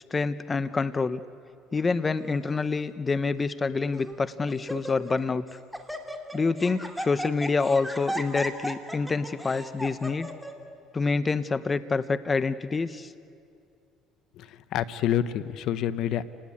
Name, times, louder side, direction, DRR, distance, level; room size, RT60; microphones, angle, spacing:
voice 1, 0.1-1.2 1.7-5.6 6.3-10.3 10.9-13.1, left 4 dB, 25° left, 13 dB, 0.8 m, -27 dB
Laughter, 2.2-2.6 3.3-3.4 3.9-4.2 4.5-5.2 5.5-10.5, equal, ahead, 2.4 m, -36 dB
voice 2, 14.4-16.2, left 10 dB, 65° left, 14 dB, 0.9 m, -28 dB
29.5 x 19.0 x 8.6 m, 2.5 s
supercardioid pair, 90°, 0 cm